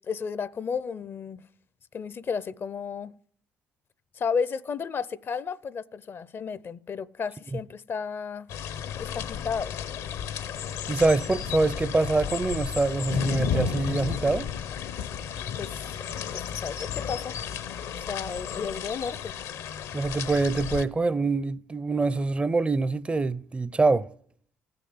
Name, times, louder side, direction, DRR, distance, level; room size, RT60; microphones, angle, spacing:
voice 1, 0.1-1.4 1.9-3.1 4.1-8.5 9.0-9.8 15.6-16.1 16.3-17.4 18.0-19.3, left 6 dB, 40° left, 0.5 m, -33 dB
sound 1, 8.5-20.8, left 8 dB, 70° left, 0.8 m, -33 dB
voice 2, 10.9-14.5 19.9-24.1, right 3 dB, 20° right, 0.4 m, -25 dB
15.0 x 6.7 x 9.5 m
supercardioid pair, 85°, 6 cm